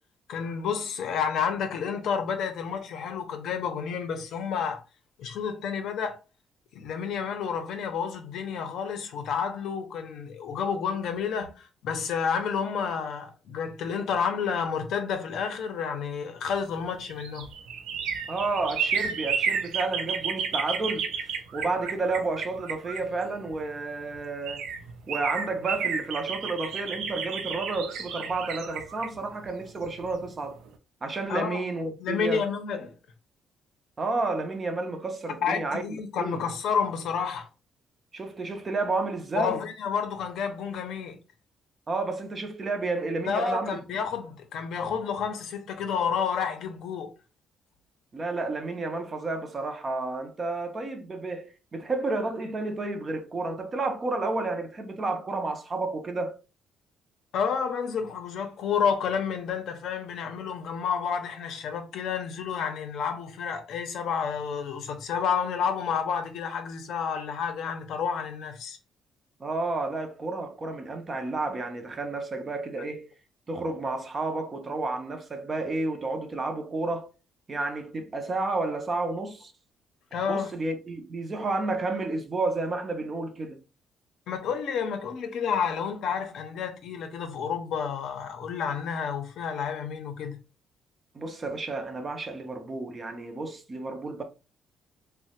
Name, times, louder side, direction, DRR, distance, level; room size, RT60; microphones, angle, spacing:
voice 1, 0.3-4.8 5.2-6.2 6.7-17.5 31.3-31.6 32.0-32.9 35.4-37.5 39.3-41.2 43.3-47.1 57.3-68.8 80.1-80.5 84.3-90.4, left 6 dB, 65° left, 0.5 m, -30 dB
sound 1, 16.8-23.6 24.1-24.2 24.4-30.2 30.6-30.7, right 6 dB, 85° right, 0.4 m, -32 dB
voice 2, 18.3-21.1 21.5-24.7 25.1-30.6 31.0-32.5 34.0-35.8 36.2-36.4 38.1-39.6 41.9-43.8 48.1-56.4 69.4-73.1 73.5-77.1 77.5-79.5 80.3-83.6 91.1-94.2, right 3 dB, 25° right, 0.4 m, -31 dB
3.0 x 2.0 x 2.8 m
cardioid pair, 160°, 0 cm